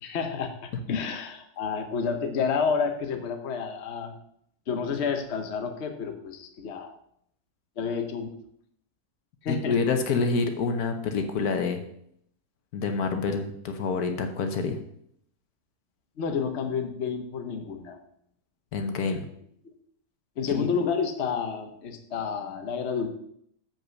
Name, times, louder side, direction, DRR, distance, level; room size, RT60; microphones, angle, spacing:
voice 1, 0.0-4.1 4.7-7.0 7.8-8.3 9.4-9.8 16.2-18.0 20.4-23.1, left 6 dB, 50° left, 5 dB, 1.1 m, -30 dB
voice 2, 9.5-11.8 12.7-14.8 18.7-19.2 20.5-20.7, left 4 dB, 75° left, 6 dB, 1.4 m, -27 dB
7.4 x 5.4 x 6.3 m, 0.70 s
omnidirectional pair, 1.6 m